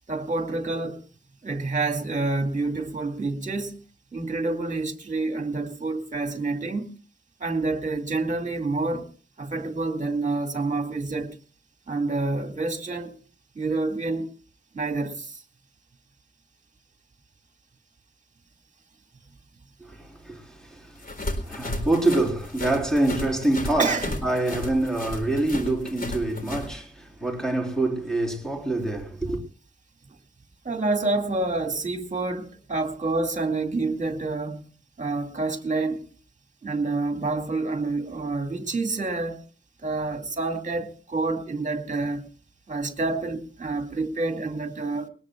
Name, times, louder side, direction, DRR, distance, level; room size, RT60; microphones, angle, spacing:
voice 1, 0.1-1.0 1.4-3.8 4.1-6.9 7.4-9.1 9.4-11.4 11.9-13.2 13.6-14.3 14.7-15.4 23.8-24.2 30.6-34.6 35.0-36.0 36.6-39.4 39.8-42.3 42.7-45.1, right 3 dB, 40° right, 2.2 m, -28 dB
voice 2, 19.8-29.4, right 2 dB, 5° left, 3.8 m, -26 dB
sound 1, 21.0-26.7, left 2 dB, 45° left, 3.9 m, -34 dB
21.5 x 19.5 x 2.3 m
wide cardioid pair, 155°, 20 cm